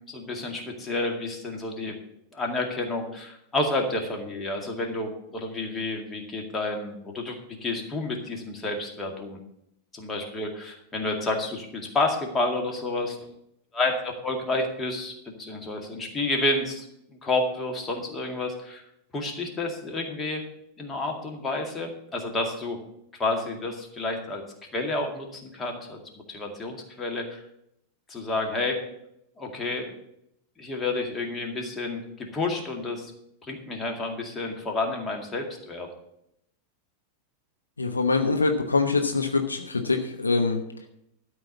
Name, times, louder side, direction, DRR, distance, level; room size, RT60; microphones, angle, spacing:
voice 1, 0.1-2.0 2.3-9.4 9.9-13.2 13.7-16.9 17.2-18.8 19.1-20.4 20.8-22.8 23.2-24.4 24.7-26.0 26.3-27.4 28.1-28.8 29.4-29.9 30.6-32.0 32.3-33.1 33.4-35.9, left 2 dB, 15° left, 2 dB, 2.1 m, -30 dB
voice 2, 37.8-40.9, left 3 dB, 80° left, 5 dB, 0.9 m, -24 dB
12.5 x 4.8 x 8.3 m, 0.77 s
figure-of-eight pair, 90°, 0 cm